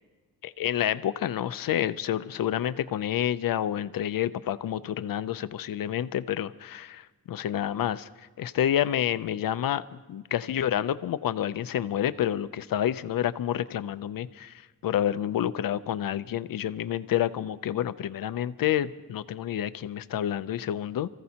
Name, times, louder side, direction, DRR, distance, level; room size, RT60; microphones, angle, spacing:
voice 1, 0.4-8.1 8.4-21.1, left 11 dB, 65° left, 15 dB, 0.5 m, -29 dB
28.5 x 15.0 x 2.8 m, 1.3 s
wide cardioid pair, 170°, 37 cm